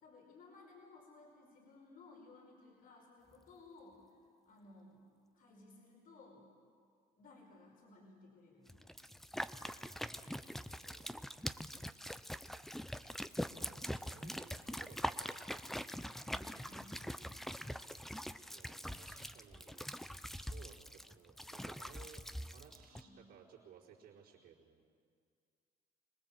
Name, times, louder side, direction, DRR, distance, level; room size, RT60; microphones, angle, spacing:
voice 1, 0.0-4.0 4.5-5.1 5.3-6.5 7.2-9.0 16.3-17.3 22.9-23.2, left 3 dB, 55° left, 0 dB, 5.0 m, -59 dB
sound 1, 8.7-23.0, equal, ahead, 0.6 m, -43 dB
voice 2, 9.6-11.1 13.0-13.1 13.5-15.6 18.5-19.9 20.3-24.8, right 7 dB, 70° right, -8 dB, 4.4 m, -60 dB
25.5 x 19.0 x 7.6 m, 2.2 s
cardioid pair, 110°, 17 cm